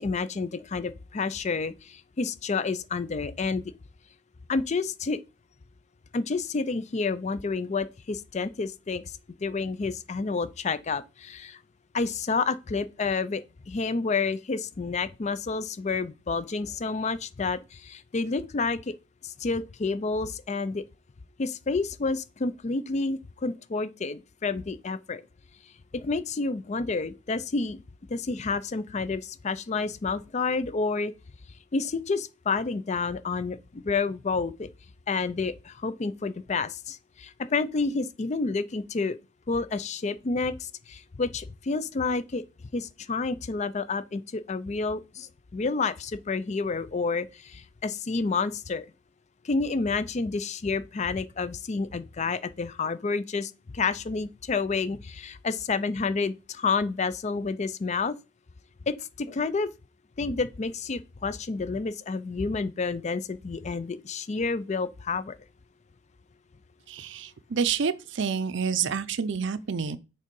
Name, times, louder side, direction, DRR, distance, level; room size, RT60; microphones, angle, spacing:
voice 1, 0.0-3.7 4.5-5.2 6.1-9.0 9.4-11.6 11.9-18.9 19.2-20.8 21.4-25.2 25.9-27.8 28.1-31.1 31.7-34.7 35.1-39.2 39.5-42.4 42.7-48.9 49.4-58.2 58.9-59.7 60.2-65.4, left 4 dB, 35° left, 0.4 m, -29 dB
voice 2, 66.9-70.0, right 6 dB, 60° right, 0.5 m, -28 dB
6.6 x 3.6 x 5.3 m
head